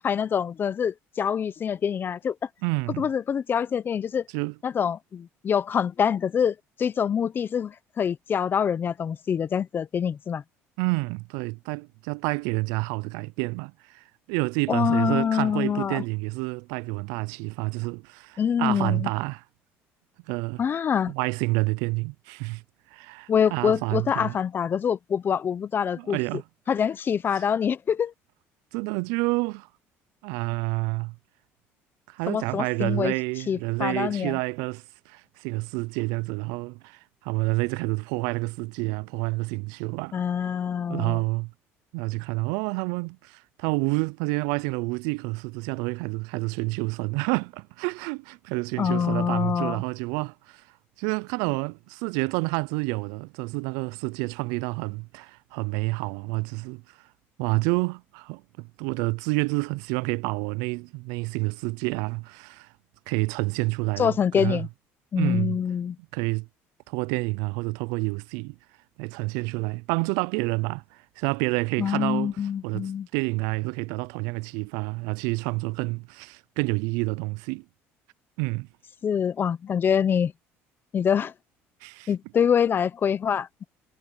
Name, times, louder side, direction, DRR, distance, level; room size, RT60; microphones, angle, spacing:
voice 1, 0.0-2.4 3.0-4.2 4.6-10.4 14.7-16.0 18.4-19.1 20.6-21.1 23.3-26.2 26.7-28.1 32.3-33.1 33.5-34.4 40.1-41.2 48.8-49.8 64.0-64.7 65.1-66.0 71.8-73.1 79.0-80.3 80.9-81.3 82.1-83.6, left 7 dB, 40° left, 0.9 m, -25 dB
voice 2, 2.6-3.1 4.3-4.5 10.8-19.4 20.3-20.6 21.1-22.6 22.9-24.3 26.0-26.4 28.7-29.7 30.2-31.2 32.1-40.2 40.9-41.5 41.9-50.6 51.0-57.0 57.4-62.7 63.1-64.7 65.2-65.6 66.1-66.5 66.9-68.6 69.0-72.4 72.6-77.6 78.4-78.7 81.8-82.1, right 27 dB, 85° right, 0.3 m, -29 dB
supercardioid pair, 95°, 6 cm